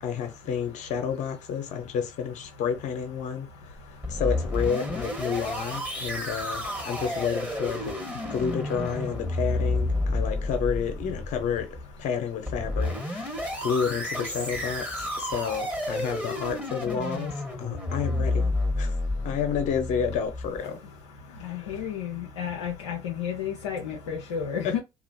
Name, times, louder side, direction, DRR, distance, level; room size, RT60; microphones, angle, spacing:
voice 1, 0.0-3.5 4.1-11.7 12.0-14.8 15.2-17.3 17.6-18.5 18.8-18.9 19.2-20.8 21.4-21.6 24.6-24.7, left 7 dB, 60° left, 0.9 m, -30 dB
sound 1, 3.8-20.6, left 1 dB, 10° right, 1.4 m, -31 dB
voice 2, 21.4-24.8, left 8 dB, 85° left, 0.5 m, -32 dB
2.9 x 2.5 x 2.7 m
hypercardioid pair, 50°, 14 cm